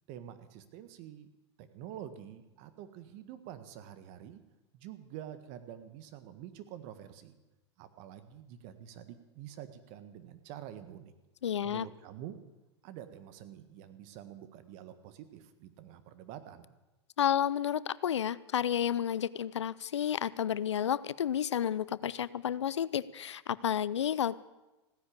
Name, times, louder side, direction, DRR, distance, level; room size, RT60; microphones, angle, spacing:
voice 1, 0.1-1.3 1.6-4.4 4.7-7.4 7.8-11.1 11.6-12.4 12.8-16.8, right 10 dB, 55° right, 11 dB, 1.6 m, -47 dB
voice 2, 11.4-11.9 17.2-24.4, left 9 dB, 85° left, 19 dB, 0.5 m, -31 dB
16.0 x 10.0 x 8.7 m, 1.0 s
hypercardioid pair, 100°, 14 cm